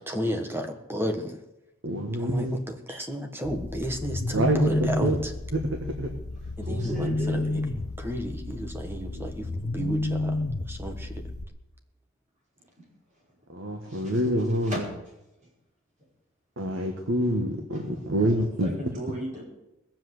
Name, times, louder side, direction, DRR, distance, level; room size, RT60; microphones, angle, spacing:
voice 1, 0.0-1.4 2.1-5.3 6.6-11.3, equal, 10° right, 5 dB, 1.3 m, -33 dB
voice 2, 1.8-2.6 4.3-4.7 5.0-5.2 5.5-6.1 13.5-14.8 16.6-18.7, right 1 dB, 60° right, 3 dB, 1.5 m, -26 dB
sound 1, 3.4-11.4, left 2 dB, 85° left, 1.0 m, -31 dB
voice 3, 6.6-7.5 12.8-12.9 13.8-14.2 14.6-14.8 17.7-17.8 18.2-19.4, right 1 dB, 35° right, -3 dB, 5.0 m, -37 dB
19.5 x 7.7 x 7.9 m, 0.93 s
head